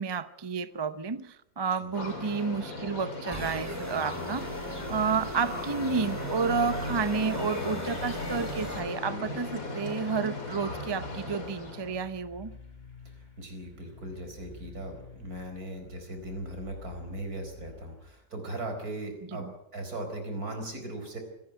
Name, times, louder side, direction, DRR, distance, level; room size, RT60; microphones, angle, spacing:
voice 1, 0.0-4.5 4.9-12.6 19.3-19.5, right 5 dB, 30° right, 0.5 m, -31 dB
sound 1, 1.9-12.0, left 2 dB, 60° left, 3.7 m, -37 dB
sound 2, 3.3-8.8, equal, 10° right, 2.1 m, -40 dB
sound 3, 10.5-18.0, left 3 dB, 25° left, 4.0 m, -50 dB
voice 2, 13.4-21.2, right 1 dB, 65° right, 5.1 m, -38 dB
26.5 x 11.0 x 9.2 m
omnidirectional pair, 1.7 m